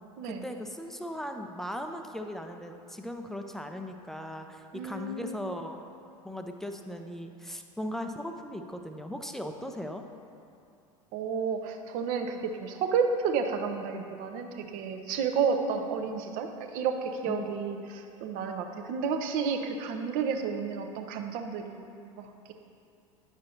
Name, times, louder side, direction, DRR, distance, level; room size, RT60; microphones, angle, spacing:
voice 1, 0.2-5.8 6.2-10.0 17.3-17.6, left 1 dB, ahead, 5 dB, 0.4 m, -38 dB
voice 2, 4.7-5.5 11.1-22.5, right 5 dB, 50° right, 5 dB, 0.7 m, -31 dB
9.4 x 6.3 x 2.7 m, 2.5 s
figure-of-eight pair, 80°, 18 cm